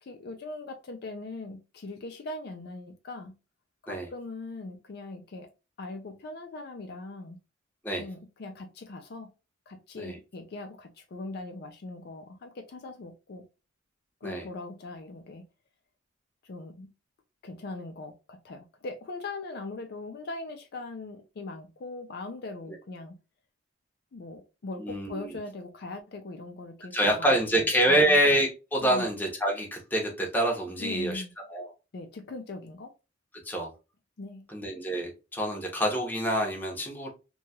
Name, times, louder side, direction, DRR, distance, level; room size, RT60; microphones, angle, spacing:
voice 1, 0.0-3.4 3.8-5.5 5.8-7.4 8.0-9.3 9.7-13.5 14.2-15.5 16.4-16.9 17.4-23.2 24.1-28.2 28.8-29.1 30.8-31.3 31.9-32.9 34.2-34.5, left 2 dB, 55° left, 0.4 m, -40 dB
voice 2, 24.8-25.4 26.9-31.2 31.5-31.7 33.4-33.7 34.5-37.1, right 1 dB, 10° left, 0.8 m, -26 dB
2.8 x 2.2 x 2.7 m
head